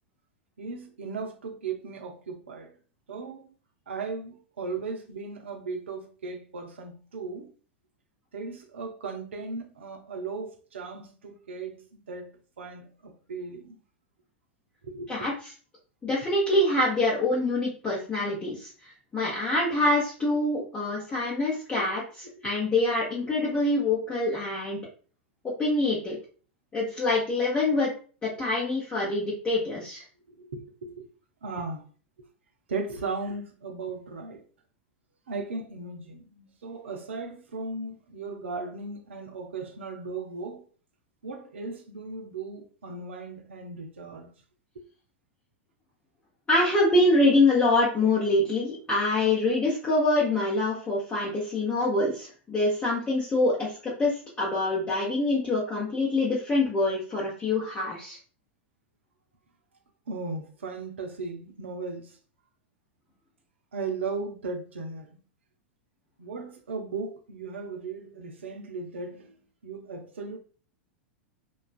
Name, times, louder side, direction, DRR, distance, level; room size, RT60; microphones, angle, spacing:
voice 1, 0.6-2.7 3.1-3.5 3.9-7.5 8.3-12.3 12.6-13.8 14.8-15.2 21.7-21.9 30.3-31.1 31.4-31.8 32.2-32.3 32.7-34.4 35.3-40.6 41.2-44.3 60.1-62.2 63.7-65.2 66.2-69.3 69.6-70.4, right 4 dB, 80° right, 0.5 m, -37 dB
voice 2, 16.0-22.0 22.4-24.8 25.6-26.2 26.7-27.9 28.2-30.0 46.5-58.2, left 2 dB, 20° left, 0.8 m, -25 dB
2.3 x 2.3 x 2.3 m
hypercardioid pair, 95°, 6 cm